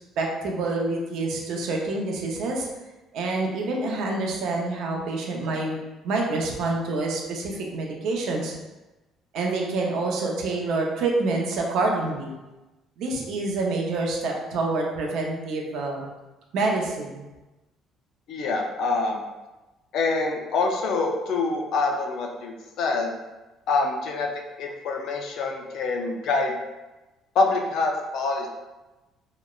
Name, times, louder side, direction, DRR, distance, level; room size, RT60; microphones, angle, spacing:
voice 1, 0.2-2.7 3.1-8.5 9.3-12.3 13.0-16.1 16.5-17.3, right 3 dB, 70° right, 0 dB, 0.5 m, -27 dB
voice 2, 18.3-19.2 19.9-23.2 23.7-24.3 24.6-26.6 27.4-28.5, left 3 dB, 60° left, 2 dB, 0.4 m, -25 dB
2.9 x 2.0 x 2.2 m, 1.1 s
cardioid pair, 150°, 0 cm